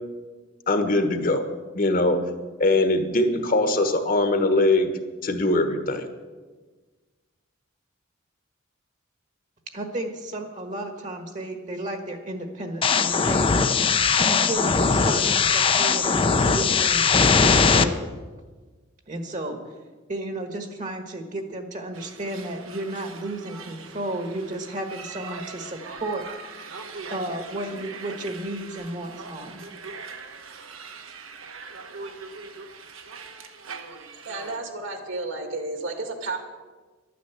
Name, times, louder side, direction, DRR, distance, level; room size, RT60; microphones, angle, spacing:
voice 1, 0.7-1.4 1.7-2.2 2.6-4.9 5.2-6.1, left 2 dB, 45° left, 7 dB, 1.2 m, -21 dB
voice 2, 9.7-13.5 14.2-17.1 17.4-18.1 19.1-19.6 20.1-26.2 27.1-29.6, right 1 dB, 35° right, 6 dB, 1.4 m, -33 dB
sound 1, 12.8-17.8, left 5 dB, 25° left, 0.5 m, -20 dB
sound 2, 21.9-34.6, right 4 dB, 80° right, 1.3 m, -41 dB
voice 3, 34.3-36.4, right 2 dB, 65° right, 5 dB, 2.1 m, -32 dB
11.5 x 9.4 x 8.1 m, 1.3 s
head